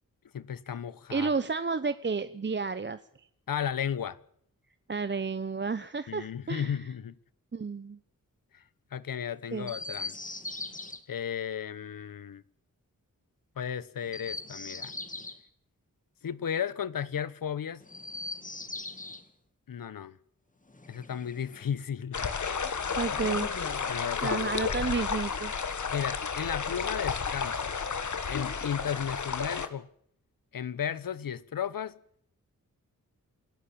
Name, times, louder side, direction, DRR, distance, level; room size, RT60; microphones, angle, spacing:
voice 1, 0.3-1.3 3.5-4.2 6.1-7.2 8.5-8.6 8.9-10.1 11.1-12.4 13.6-14.9 16.2-17.8 19.7-20.2 20.9-22.7 23.9-24.7 25.9-27.7 28.3-29.9 30.5-32.0, left 8 dB, 85° left, 1.1 m, -34 dB
voice 2, 1.1-3.0 4.9-6.7 7.5-8.0 9.5-9.7 23.0-23.5 24.2-25.5, right 4 dB, 35° right, 0.8 m, -31 dB
Chirp tweet, 9.6-11.0 14.0-15.4 17.8-19.2 20.7-21.7 22.8-23.7, left 2 dB, 25° left, 2.1 m, -41 dB
sound 1, 22.1-29.7, left 5 dB, 60° left, 1.8 m, -32 dB
27.0 x 14.0 x 8.7 m
wide cardioid pair, 95°, 33 cm